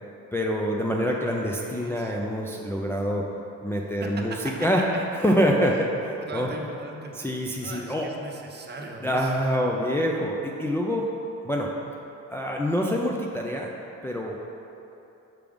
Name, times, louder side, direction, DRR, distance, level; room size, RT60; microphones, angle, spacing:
voice 1, 0.3-3.3 3.6-4.8 5.2-6.5 7.1-8.1 9.0-11.1 11.4-11.7 12.3-13.7 14.0-14.4, equal, 10° left, -1 dB, 0.4 m, -26 dB
voice 2, 1.2-2.1 4.0-5.4 5.6-5.9 6.3-7.2 7.6-9.5, right 3 dB, 35° right, 1 dB, 0.7 m, -39 dB
5.9 x 3.4 x 5.2 m, 2.9 s
cardioid pair, 90°, 30 cm